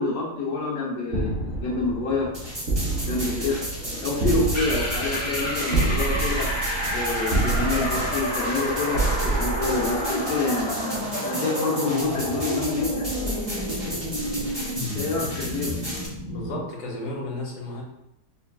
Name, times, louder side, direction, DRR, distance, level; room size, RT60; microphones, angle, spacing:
voice 1, 0.0-2.3 2.9-3.6 4.0-6.5 6.9-10.7 11.2-13.1 14.9-15.7, left 3 dB, 90° left, -3 dB, 1.5 m, -27 dB
sound 1, 1.1-10.6, right 2 dB, 60° right, 1.4 m, -28 dB
sound 2, 2.3-16.1, equal, 15° right, 1.2 m, -34 dB
sound 3, 4.5-16.6, equal, 10° left, 0.7 m, -30 dB
voice 2, 16.3-17.8, left 1 dB, 60° left, -3 dB, 1.2 m, -33 dB
5.5 x 2.5 x 2.2 m, 0.87 s
omnidirectional pair, 1.8 m